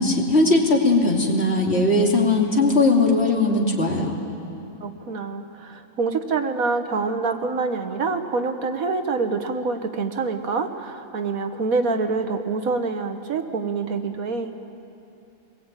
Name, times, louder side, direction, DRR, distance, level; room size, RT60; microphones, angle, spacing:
voice 1, 0.0-4.2, left 2 dB, 45° left, -1 dB, 3.0 m, -19 dB
voice 2, 4.8-14.5, right 4 dB, 75° right, 7 dB, 1.8 m, -26 dB
23.5 x 20.5 x 9.0 m, 2.8 s
omnidirectional pair, 1.5 m